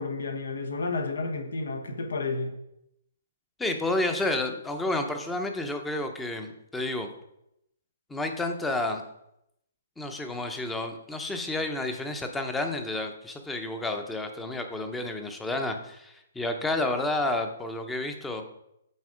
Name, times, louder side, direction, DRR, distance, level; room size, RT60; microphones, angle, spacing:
voice 1, 0.0-2.6, left 3 dB, 85° left, 6 dB, 1.2 m, -31 dB
voice 2, 3.6-7.1 8.1-9.0 10.0-18.4, left 2 dB, 5° left, 6 dB, 0.7 m, -30 dB
8.2 x 4.2 x 4.9 m, 0.80 s
hypercardioid pair, 155°, 0 cm